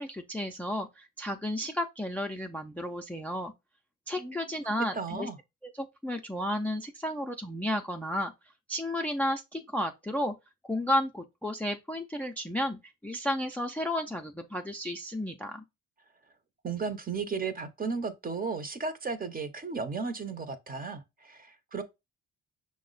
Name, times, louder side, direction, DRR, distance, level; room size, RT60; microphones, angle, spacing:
voice 1, 0.0-3.5 4.1-5.3 5.6-8.3 8.7-10.3 10.6-15.6, left 1 dB, 5° left, 0.4 m, -32 dB
voice 2, 4.2-5.4 16.6-21.8, right 4 dB, 30° right, 0.7 m, -35 dB
5.7 x 2.1 x 3.8 m
cardioid pair, 90°, 30 cm